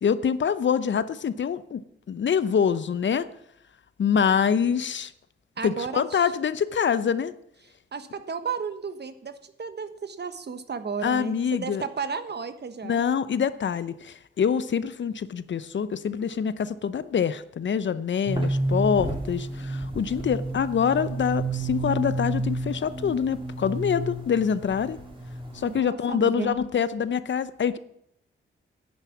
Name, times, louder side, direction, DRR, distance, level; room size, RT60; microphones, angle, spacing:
voice 1, 0.0-3.3 4.0-5.1 5.6-7.3 11.0-11.8 12.8-25.0 25.5-27.8, left 7 dB, 65° left, 15 dB, 0.7 m, -25 dB
voice 2, 5.6-6.3 7.9-13.0 25.6-26.6, right 5 dB, 55° right, 10 dB, 1.2 m, -33 dB
sound 1, 18.3-25.8, right 2 dB, 25° right, 3.1 m, -30 dB
10.5 x 9.8 x 7.2 m, 0.74 s
cardioid pair, 75°, 21 cm